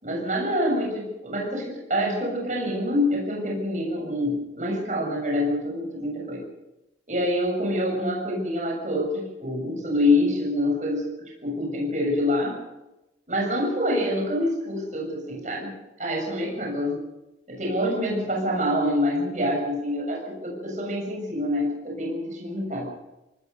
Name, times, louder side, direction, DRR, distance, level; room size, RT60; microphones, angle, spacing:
voice 1, 0.0-6.5 7.1-11.1 11.4-12.6 13.3-17.0 17.5-22.9, left 1 dB, 40° right, -1 dB, 6.9 m, -26 dB
26.0 x 19.0 x 6.7 m, 0.97 s
head